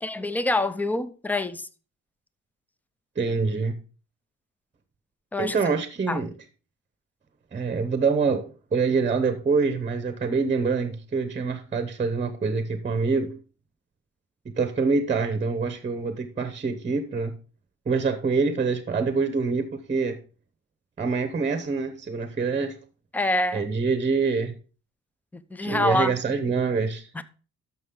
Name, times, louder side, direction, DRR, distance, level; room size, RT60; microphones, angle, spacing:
voice 1, 0.0-1.7 5.3-5.6 6.1-6.2 23.1-23.7 25.3-26.2 27.1-27.2, left 2 dB, 5° left, 0.4 m, -26 dB
voice 2, 3.2-3.8 5.4-6.3 7.5-8.5 8.7-13.3 14.6-17.3 17.9-20.2 21.0-22.7 23.5-24.5 25.6-27.0, right 4 dB, 25° right, 0.8 m, -25 dB
12.5 x 6.1 x 3.8 m
cardioid pair, 160°, 31 cm